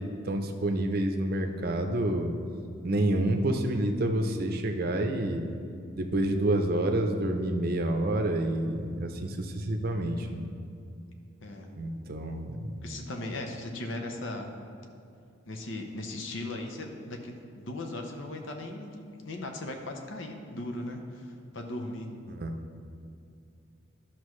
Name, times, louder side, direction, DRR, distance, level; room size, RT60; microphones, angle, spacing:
voice 1, 0.0-2.3 2.8-5.5 6.0-10.4 11.7-12.7 22.3-22.5, right 1 dB, 45° right, 5 dB, 0.6 m, -28 dB
voice 2, 12.8-14.5 15.5-18.9 19.2-22.1, left 2 dB, 65° left, 3 dB, 0.8 m, -38 dB
11.5 x 5.9 x 3.2 m, 2.5 s
head